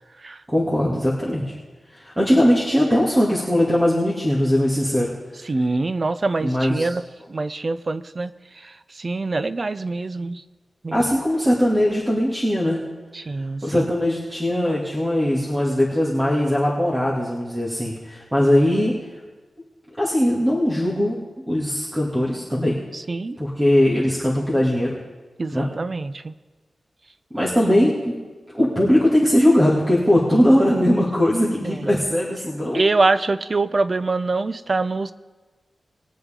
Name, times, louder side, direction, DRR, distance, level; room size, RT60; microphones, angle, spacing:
voice 1, 0.5-1.5 1.9-5.1 6.4-6.9 10.9-12.8 13.6-18.9 20.0-21.2 21.5-22.8 23.4-25.0 25.5-25.7 27.3-28.1 28.5-32.8, left 1 dB, 20° right, -5 dB, 2.4 m, -20 dB
voice 2, 5.4-7.0 7.3-10.4 10.8-11.0 13.1-13.9 22.9-23.4 25.4-26.3 31.6-32.0 32.7-35.1, right 3 dB, 45° right, 14 dB, 0.6 m, -24 dB
21.5 x 8.0 x 3.8 m, 1.3 s
cardioid pair, 55°, 0 cm